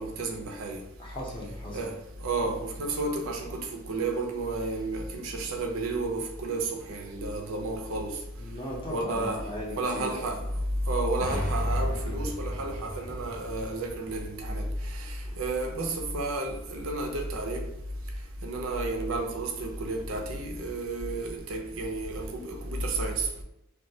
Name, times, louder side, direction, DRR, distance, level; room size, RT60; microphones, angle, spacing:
voice 1, 0.0-0.8 1.7-1.9 2.2-8.2 8.9-9.4 9.8-10.4 10.9-17.6 18.4-23.4, right 2 dB, 75° right, 0.4 m, -31 dB
voice 2, 1.0-1.9 2.4-2.5 8.3-10.4, equal, 25° left, 0.6 m, -38 dB
sound 1, 11.2-14.9, equal, 65° left, 0.8 m, -39 dB
2.3 x 2.1 x 2.6 m
head